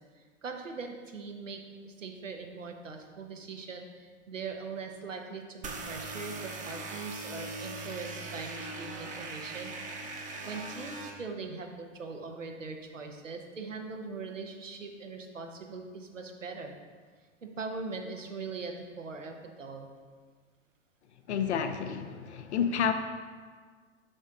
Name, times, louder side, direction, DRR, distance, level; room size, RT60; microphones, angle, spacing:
voice 1, 0.4-9.7 10.5-16.7 17.4-19.9, right 4 dB, 85° right, 3 dB, 0.9 m, -41 dB
sound 1, 5.6-11.1, right 3 dB, 20° right, 0.9 m, -40 dB
voice 2, 21.3-22.9, left 7 dB, 65° left, 7 dB, 0.8 m, -30 dB
6.3 x 6.2 x 3.9 m, 1.5 s
figure-of-eight pair, 95°, 37 cm